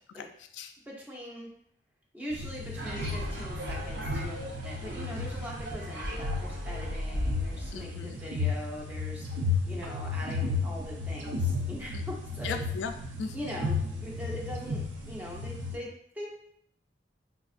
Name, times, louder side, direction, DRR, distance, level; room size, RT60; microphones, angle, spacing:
voice 1, 0.9-1.5 2.1-12.6 13.3-16.3, equal, 10° right, -3 dB, 0.7 m, -41 dB
sound 1, 2.3-15.8, left 3 dB, 85° right, 0.6 m, -34 dB
sound 2, 2.8-7.8, equal, 70° right, 0.9 m, -36 dB
voice 2, 7.7-8.2 11.9-12.0 12.4-12.9 13.2-13.3, left 5 dB, 75° left, 7 dB, 0.3 m, -36 dB
5.1 x 2.4 x 2.5 m, 0.68 s
head